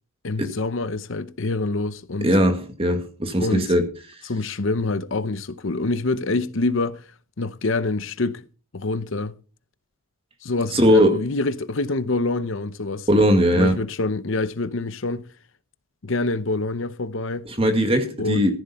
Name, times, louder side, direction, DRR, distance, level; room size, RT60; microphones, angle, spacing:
voice 1, 0.2-2.3 3.4-3.7 4.3-7.0 7.4-8.4 8.7-9.3 10.4-13.1 13.5-15.3 16.0-17.5 18.2-18.5, left 3 dB, 60° left, 0.8 m, -26 dB
voice 2, 2.2-3.8 10.7-11.2 13.1-13.8 17.5-18.5, equal, 25° right, 2.0 m, -19 dB
14.5 x 11.0 x 4.3 m
head